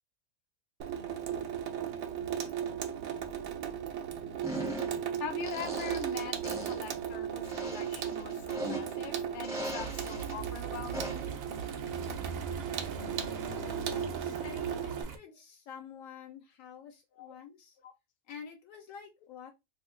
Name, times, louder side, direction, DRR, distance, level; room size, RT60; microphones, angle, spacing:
Water tap faucet / Sink (filling or washing), 0.8-15.0, right 9 dB, 85° right, 1.0 m, -36 dB
sound 1, 4.4-5.1 5.4-6.2 6.4-6.9 7.4-9.1 9.4-10.3 10.9-11.3, equal, 5° right, 0.4 m, -39 dB
voice 1, 5.2-11.2 17.2-17.3 17.8-17.9, left 5 dB, 50° left, 0.7 m, -42 dB
sound 2, 9.8-15.2, right 5 dB, 60° right, 0.7 m, -41 dB
voice 2, 13.5-17.8 18.3-19.5, left 7 dB, 80° left, 1.0 m, -48 dB
2.6 x 2.2 x 3.5 m
omnidirectional pair, 1.4 m